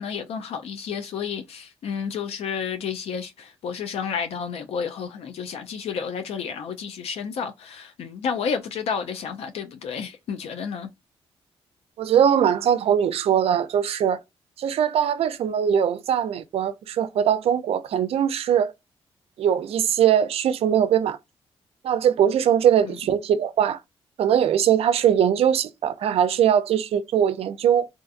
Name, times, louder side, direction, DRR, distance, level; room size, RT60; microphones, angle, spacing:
voice 1, 0.0-10.9 22.9-23.0, left 6 dB, 80° left, 0.4 m, -31 dB
voice 2, 12.0-14.2 14.6-18.7 19.4-21.2 21.8-23.8 24.2-27.9, right 9 dB, 70° right, 0.4 m, -21 dB
2.5 x 2.4 x 2.4 m
cardioid pair, 65°, 10 cm